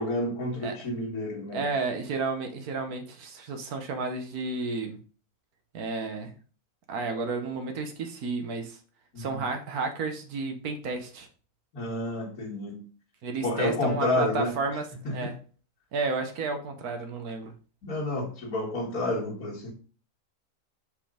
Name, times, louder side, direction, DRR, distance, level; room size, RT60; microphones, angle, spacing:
voice 1, 0.0-1.6 9.1-9.4 11.7-12.8 13.4-14.6 15.0-15.3 17.8-19.7, left 1 dB, 75° left, 2.1 m, -30 dB
voice 2, 1.5-5.0 5.7-6.4 6.9-8.8 9.2-11.3 13.2-14.8 15.1-15.4 15.9-17.5, right 3 dB, 85° right, 1.5 m, -32 dB
5.2 x 5.0 x 3.6 m
omnidirectional pair, 1.6 m